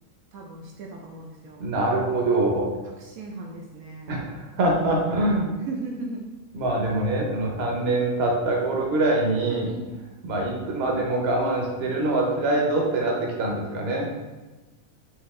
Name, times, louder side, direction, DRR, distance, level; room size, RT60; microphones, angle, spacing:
voice 1, 0.3-1.7 3.0-4.2 4.9-6.2 9.4-9.9, right 3 dB, 70° right, -1 dB, 1.0 m, -37 dB
voice 2, 1.6-2.7 4.1-5.5 6.5-9.7 10.2-14.1, right 2 dB, 50° right, -1 dB, 0.9 m, -24 dB
4.8 x 2.8 x 3.5 m, 1.2 s
omnidirectional pair, 1.6 m